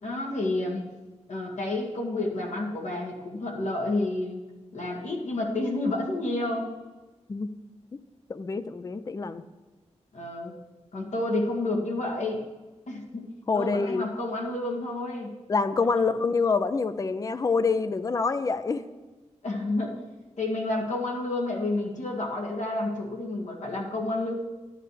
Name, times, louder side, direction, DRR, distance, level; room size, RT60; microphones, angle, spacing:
voice 1, 0.0-0.8 1.3-4.4 4.7-6.8 10.1-10.5 10.9-12.4 12.9-15.3 16.0-16.1 19.4-20.0 20.4-24.3, left 2 dB, 80° left, -1 dB, 2.1 m, -30 dB
voice 2, 8.3-9.4 13.5-14.1 15.5-18.8, left 4 dB, 30° left, 12 dB, 0.4 m, -26 dB
13.5 x 10.5 x 3.3 m, 1.2 s
wide cardioid pair, 150°, 12 cm